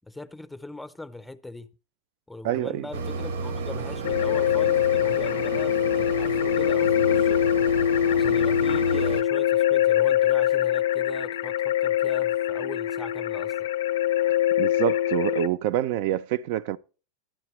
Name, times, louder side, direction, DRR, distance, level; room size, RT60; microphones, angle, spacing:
voice 1, 0.0-1.7 2.3-7.5 8.1-13.7, left 2 dB, 5° left, 0.6 m, -40 dB
voice 2, 2.4-2.9 14.6-16.8, right 13 dB, 60° right, 0.4 m, -26 dB
Mechanisms, 2.9-9.2, right 4 dB, 90° right, 0.9 m, -32 dB
sound 1, 4.0-15.5, left 11 dB, 85° left, 0.4 m, -23 dB
11.5 x 9.5 x 3.1 m
supercardioid pair, 140°, 0 cm